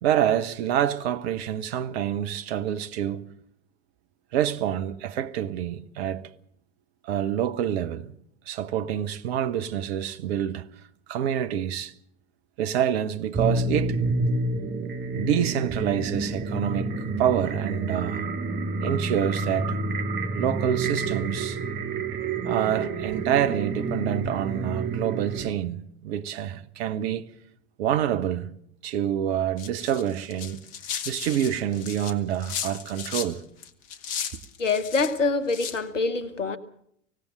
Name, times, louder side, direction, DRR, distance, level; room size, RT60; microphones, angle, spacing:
voice 1, 0.0-3.3 4.3-6.3 7.0-8.1 8.5-10.7 11.1-11.9 12.6-14.0 15.1-18.3 18.8-19.8 20.3-21.6 22.4-27.3 27.8-28.5 28.8-30.6 31.0-33.4, right 10 dB, 55° right, 1.2 m, -27 dB
sound 1, 13.3-25.5, right 3 dB, 30° right, 1.8 m, -29 dB
sound 2, 29.6-33.3 33.6-35.1 35.5-35.8, left 8 dB, 50° left, 1.8 m, -35 dB
voice 2, 34.6-36.6, left 4 dB, 80° left, 1.3 m, -25 dB
25.0 x 17.0 x 6.6 m
figure-of-eight pair, 80°, 37 cm